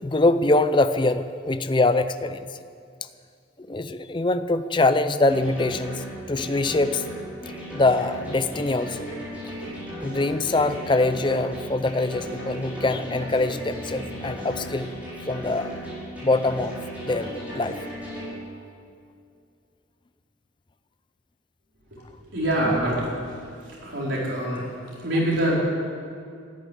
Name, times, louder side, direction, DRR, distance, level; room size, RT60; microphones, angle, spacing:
voice 1, 0.0-2.5 3.6-7.0 7.7-9.1 10.0-14.9 15.3-15.7 16.2-16.7 17.0-17.3 17.5-17.8, left 2 dB, 25° left, 11 dB, 0.5 m, -23 dB
sound 1, 5.3-18.3, equal, 5° right, 5.0 m, -36 dB
voice 2, 22.3-23.1 23.8-24.7 25.0-25.6, right 1 dB, 70° right, -5 dB, 4.8 m, -24 dB
13.0 x 10.5 x 9.9 m, 2.4 s
head